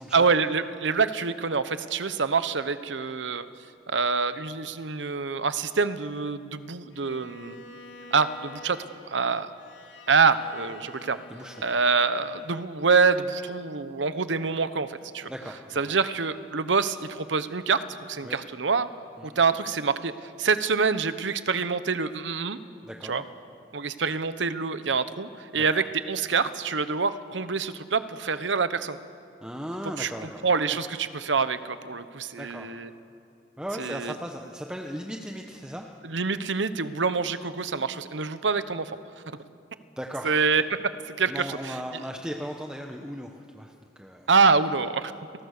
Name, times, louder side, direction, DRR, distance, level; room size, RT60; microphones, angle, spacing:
voice 1, 0.1-3.5 3.9-7.6 8.1-9.5 10.1-11.2 11.6-15.3 15.8-18.9 19.2-22.6 23.0-23.2 23.7-29.0 30.0-32.9 33.8-34.1 36.0-39.0 40.2-40.6 41.2-42.0 44.3-45.1, right 5 dB, 80° right, 13 dB, 1.0 m, -26 dB
Bowed string instrument, 6.9-13.2, left 1 dB, 85° left, 2.0 m, -49 dB
voice 2, 15.3-15.9 18.2-18.4 19.2-19.4 22.8-23.2 25.5-25.8 29.4-30.4 30.7-30.8 32.4-32.7 33.6-35.9 40.0-40.4 41.3-44.3, equal, 5° right, 2 dB, 1.0 m, -37 dB
29.0 x 19.5 x 6.7 m, 2.5 s
head